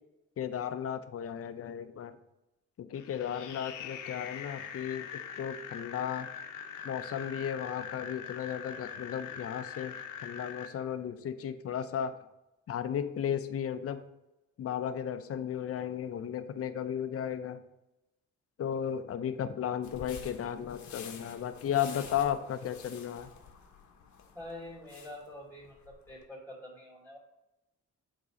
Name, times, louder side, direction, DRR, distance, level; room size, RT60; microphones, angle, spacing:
voice 1, 0.4-2.2 2.8-5.1 5.4-6.3 6.8-12.2 12.7-14.0 14.6-17.6 18.6-23.3, left 9 dB, 50° left, 10 dB, 0.7 m, -34 dB
sound 1, 2.9-10.7, left 7 dB, 85° left, 0.8 m, -43 dB
sound 2, 19.8-26.2, left 7 dB, 70° left, 1.2 m, -50 dB
voice 2, 24.3-27.2, left 1 dB, 10° left, -8 dB, 2.8 m, -46 dB
7.8 x 4.1 x 5.0 m, 0.93 s
cardioid pair, 90°, 30 cm